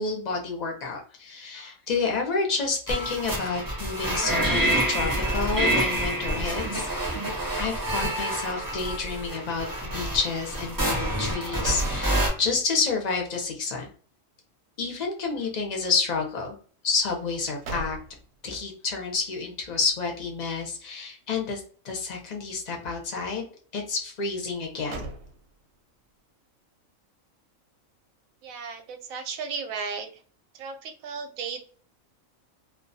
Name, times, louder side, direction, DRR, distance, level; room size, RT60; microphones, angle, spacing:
voice 1, 0.0-6.9 7.5-13.9 14.8-16.6 16.8-18.0 18.4-23.4 23.7-25.1, left 4 dB, 50° left, 1 dB, 0.5 m, -29 dB
sound 1, 2.9-12.3, right 1 dB, 25° right, 0.5 m, -27 dB
sound 2, 11.3-12.9 13.3-13.4 17.2-18.4 24.5-25.8, right 2 dB, 65° right, 0.8 m, -38 dB
voice 2, 28.4-30.2 30.5-31.7, right 5 dB, 90° right, 6 dB, 1.0 m, -35 dB
2.2 x 2.2 x 2.5 m, 0.43 s
omnidirectional pair, 1.4 m